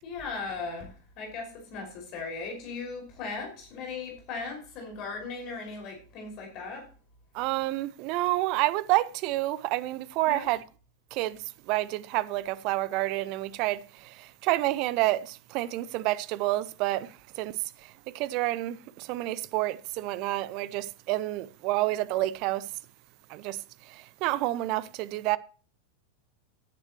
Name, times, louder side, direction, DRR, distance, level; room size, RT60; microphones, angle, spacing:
voice 1, 0.0-6.9 10.2-10.5, left 4 dB, 40° left, 5.6 m, -38 dB
voice 2, 7.3-10.6 11.1-11.4 11.7-22.7 23.3-23.6 23.9-25.4, right 17 dB, 40° right, 0.8 m, -29 dB
15.5 x 11.0 x 3.1 m
figure-of-eight pair, 90°, 0 cm